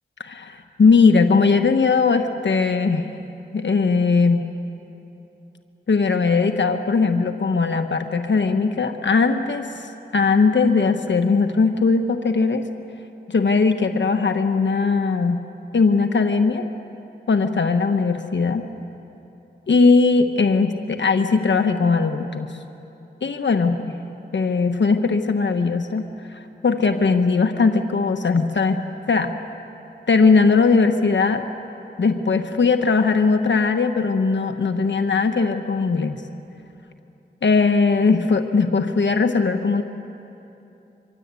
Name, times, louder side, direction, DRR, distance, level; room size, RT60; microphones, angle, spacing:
voice 1, 0.2-3.0 3.5-4.4 5.9-12.7 13.3-15.4 15.7-16.7 17.3-18.7 19.7-22.6 23.2-23.9 24.3-28.8 29.1-29.3 30.1-31.4 32.0-36.2 37.4-39.8, left 4 dB, 85° left, 6 dB, 1.2 m, -19 dB
25.5 x 24.5 x 8.3 m, 3.0 s
cardioid pair, 40°, 18 cm